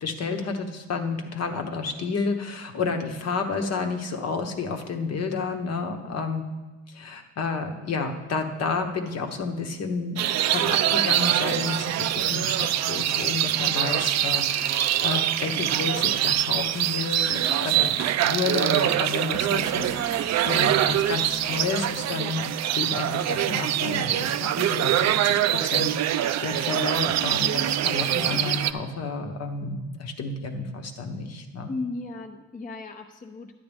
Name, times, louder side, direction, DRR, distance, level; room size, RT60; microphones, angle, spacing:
voice 1, 0.0-6.4 6.9-18.0 18.2-22.5 22.7-31.7, left 4 dB, 55° left, 4 dB, 1.1 m, -30 dB
sound 1, 10.2-28.7, right 12 dB, 65° right, 0.5 m, -24 dB
sound 2, 19.3-23.3, right 3 dB, 10° right, 0.5 m, -42 dB
voice 2, 31.7-33.5, left 3 dB, 25° left, 4 dB, 0.7 m, -36 dB
11.0 x 9.2 x 3.5 m, 1.2 s
cardioid pair, 90°, 30 cm